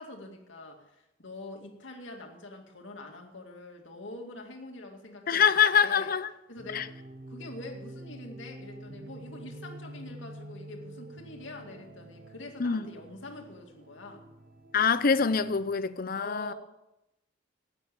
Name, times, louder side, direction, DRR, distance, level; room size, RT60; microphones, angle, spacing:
voice 1, 0.0-6.1 6.5-6.9 7.3-14.3 16.1-16.5, left 2 dB, 75° left, 2.3 m, -44 dB
voice 2, 5.3-6.3 6.7-6.9 12.6-12.9 14.7-16.5, left 6 dB, 50° left, 0.6 m, -25 dB
sound 1, 6.6-15.7, right 1 dB, 50° right, 1.1 m, -47 dB
13.5 x 9.2 x 7.0 m
head